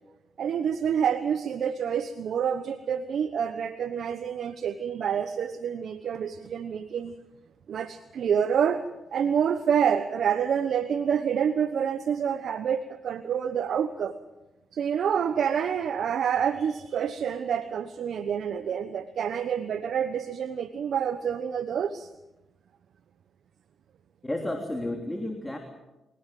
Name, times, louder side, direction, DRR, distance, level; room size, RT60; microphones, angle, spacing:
voice 1, 0.4-7.1 7.7-8.8 9.1-14.1 14.7-22.1, right 8 dB, 70° right, 10 dB, 1.1 m, -27 dB
voice 2, 24.2-25.6, left 1 dB, 15° left, 3 dB, 3.4 m, -31 dB
24.0 x 18.5 x 7.7 m, 0.99 s
supercardioid pair, 60°, 0 cm